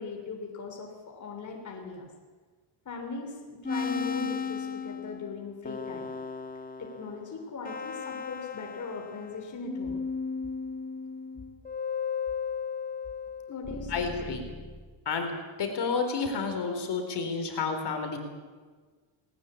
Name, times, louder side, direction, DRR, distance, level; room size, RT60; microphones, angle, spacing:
voice 1, 0.0-2.1 2.8-6.1 6.8-10.0 13.5-14.1, left 4 dB, 35° left, 2 dB, 3.5 m, -39 dB
sound 1, 3.6-9.4 9.7-14.8, left 5 dB, 15° left, 1.8 m, -35 dB
voice 2, 13.9-14.4 15.1-15.3 15.6-18.2, left 5 dB, 55° left, 5 dB, 4.1 m, -30 dB
19.5 x 18.5 x 8.5 m, 1.4 s
cardioid pair, 110°, 48 cm